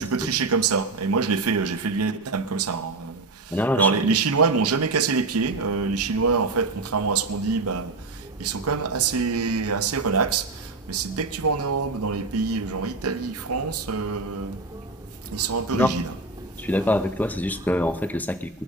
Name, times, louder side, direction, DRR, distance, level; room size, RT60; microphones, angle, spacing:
voice 1, 0.0-7.9 8.4-14.6 15.3-16.1, right 5 dB, 75° right, 0.7 m, -25 dB
voice 2, 3.5-3.9 15.7-15.9 16.6-18.6, left 1 dB, 5° left, 0.6 m, -24 dB
sound 1, 5.4-18.1, right 1 dB, 15° right, 1.7 m, -41 dB
20.5 x 10.0 x 6.4 m
head